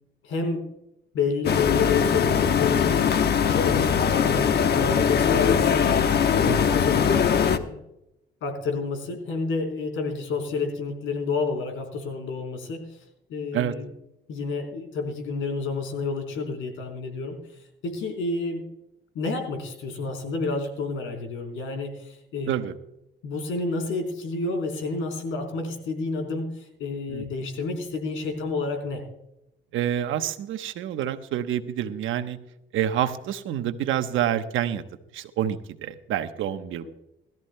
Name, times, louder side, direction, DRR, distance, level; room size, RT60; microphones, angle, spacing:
voice 1, 0.2-0.7 1.1-7.8 8.4-12.9 13.3-13.9 14.3-18.7 19.1-22.5 23.2-29.0 36.8-36.9, left 4 dB, 85° left, 4 dB, 3.8 m, -30 dB
sound 1, 1.4-7.6, left 7 dB, 55° left, 1.0 m, -21 dB
voice 2, 29.7-32.4 32.7-34.8 35.1-36.8, right 10 dB, 85° right, 9 dB, 1.0 m, -27 dB
20.5 x 13.5 x 2.2 m, 0.86 s
cardioid pair, 90°, 20 cm